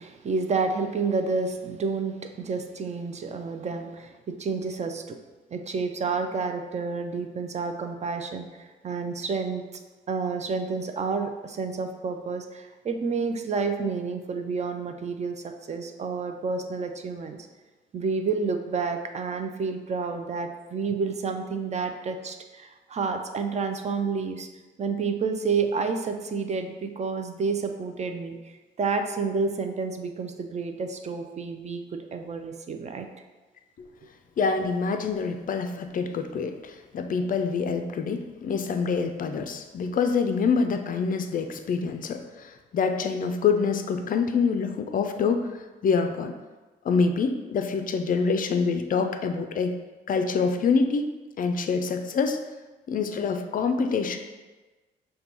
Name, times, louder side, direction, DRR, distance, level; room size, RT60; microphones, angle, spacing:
voice 1, 0.0-5.2 5.5-9.6 10.1-17.4 17.9-24.5 24.8-33.1, right 4 dB, 35° right, 6 dB, 0.4 m, -30 dB
voice 2, 34.4-46.4 46.8-49.8 50.1-51.1 51.4-52.4 52.9-54.2, left 5 dB, 45° left, 7 dB, 0.4 m, -26 dB
6.6 x 2.2 x 2.9 m, 1.2 s
cardioid pair, 90°, 20 cm